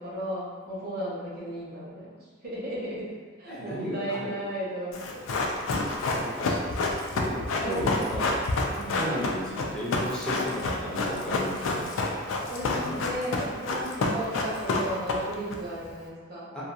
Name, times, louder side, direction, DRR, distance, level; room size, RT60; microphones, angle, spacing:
voice 1, 0.0-2.1 2.4-3.1 3.4-5.2 7.6-8.2 8.7-9.2 12.5-16.5, right 1 dB, 50° right, -8 dB, 0.9 m, -34 dB
voice 2, 3.5-4.4 6.1-8.4 8.9-11.9 12.7-13.0 16.5-16.6, equal, 5° left, -9 dB, 0.6 m, -34 dB
Run, 4.9-15.5 15.8-15.9, left 3 dB, 75° left, 0.3 m, -28 dB
2.3 x 2.3 x 2.6 m, 1.5 s
head